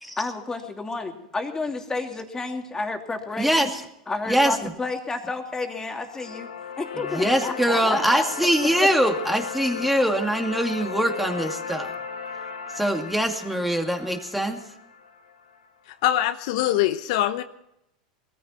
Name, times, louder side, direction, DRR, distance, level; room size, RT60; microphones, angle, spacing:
voice 1, 0.2-3.7 4.1-6.5 6.8-8.2 8.8-8.9, left 3 dB, 15° left, 4 dB, 2.7 m, -30 dB
voice 2, 3.4-3.8 4.3-4.7 7.0-11.9 12.7-14.6, right 1 dB, ahead, 4 dB, 2.4 m, -23 dB
sound 1, 5.6-15.7, left 7 dB, 90° left, 1.5 m, -36 dB
voice 3, 16.0-17.4, left 13 dB, 65° left, 11 dB, 0.8 m, -23 dB
20.5 x 14.5 x 4.4 m, 0.81 s
hypercardioid pair, 95°, 4 cm